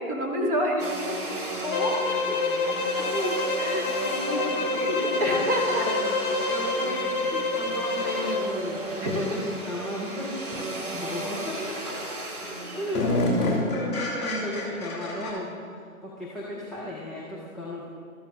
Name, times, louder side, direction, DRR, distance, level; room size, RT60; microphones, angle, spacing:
voice 1, 0.0-1.4 3.6-3.9 4.2-5.8 9.0-9.3, equal, 20° right, -2 dB, 1.5 m, -29 dB
Domestic sounds home sounds, 0.8-13.6, right 2 dB, 75° right, 2.9 m, -35 dB
voice 2, 1.6-3.5 3.7-6.2 6.5-10.3 10.8-12.2 12.7-15.6 16.0-17.9, left 1 dB, ahead, -9 dB, 0.4 m, -34 dB
sound 1, 1.7-8.5, left 3 dB, 35° left, 0.9 m, -28 dB
sound 2, 7.7-7.8 10.5-10.7 11.1-11.6 12.0-12.1 12.4-15.3, left 1 dB, 15° left, 2.9 m, -28 dB
13.5 x 12.5 x 2.7 m, 2.2 s
figure-of-eight pair, 145°, 44 cm